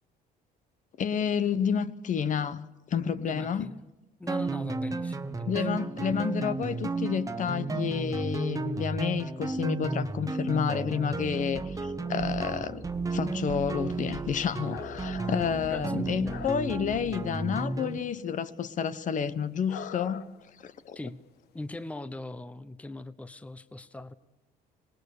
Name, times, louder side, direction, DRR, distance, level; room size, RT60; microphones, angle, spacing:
voice 1, 1.0-3.7 5.5-12.8 13.1-20.2 20.6-21.0, left 7 dB, 50° left, 1.2 m, -30 dB
voice 2, 3.2-3.9 4.2-5.7 15.7-16.4 20.9-21.2 21.5-24.1, left 2 dB, 10° left, 0.9 m, -41 dB
sound 1, 4.3-18.0, right 3 dB, 20° right, 1.4 m, -33 dB
sound 2, 13.1-13.2 13.4-14.1 14.5-17.0 17.2-18.0 18.3-18.4 18.8-18.9 19.7-20.5 20.8-20.9 21.6-21.7, left 8 dB, 75° left, 1.4 m, -44 dB
26.0 x 19.5 x 6.7 m
cardioid pair, 110°, 17 cm